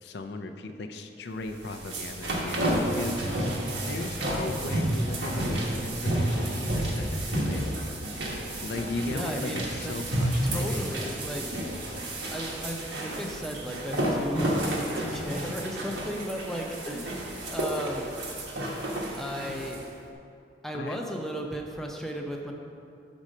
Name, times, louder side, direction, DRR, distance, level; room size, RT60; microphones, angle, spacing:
voice 1, 0.0-3.5 3.9-7.7 8.6-10.8 20.7-21.0, left 2 dB, 65° left, 6 dB, 0.4 m, -37 dB
sound 1, 1.4-19.8, right 1 dB, 85° right, 1.2 m, -31 dB
voice 2, 9.1-9.9 10.4-11.4 12.3-18.1 19.2-19.9 20.6-22.5, equal, ahead, 1 dB, 0.5 m, -35 dB
6.2 x 4.2 x 6.4 m, 2.6 s
head